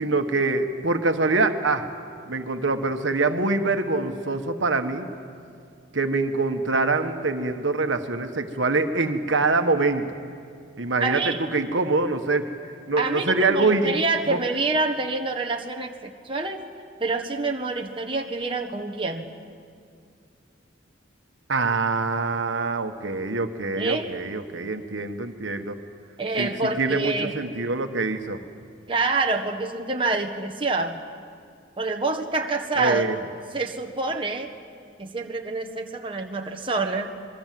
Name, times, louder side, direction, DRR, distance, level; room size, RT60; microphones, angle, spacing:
voice 1, 0.0-1.8 2.3-5.1 5.9-10.1 10.8-12.5 12.9-14.0 14.3-14.4 21.5-25.8 26.4-28.4 32.8-33.2, right 3 dB, 75° right, 6 dB, 1.4 m, -24 dB
voice 2, 11.0-11.4 13.0-16.6 17.0-19.3 23.7-24.1 26.2-27.3 28.9-31.0 31.8-33.1 33.5-34.5 35.0-37.1, right 3 dB, 25° right, 2 dB, 1.4 m, -27 dB
26.5 x 22.0 x 7.7 m, 2.3 s
head